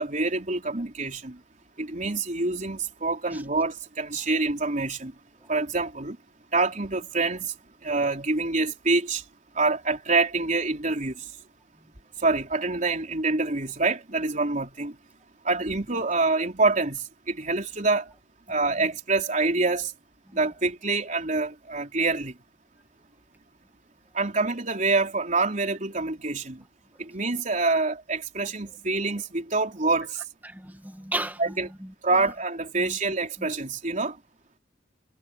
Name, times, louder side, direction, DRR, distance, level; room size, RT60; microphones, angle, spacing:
voice 1, 0.0-1.4 1.8-5.1 5.5-6.2 6.5-7.5 7.8-9.2 9.5-11.3 12.2-15.0 15.4-18.1 18.5-19.9 20.3-22.4 24.1-26.6 27.0-30.2 31.4-31.7 32.0-34.2, right 3 dB, 45° right, 3.6 m, -26 dB
voice 2, 30.4-32.3 32.8-33.0 33.4-33.5, right 1 dB, 10° right, 1.7 m, -36 dB
head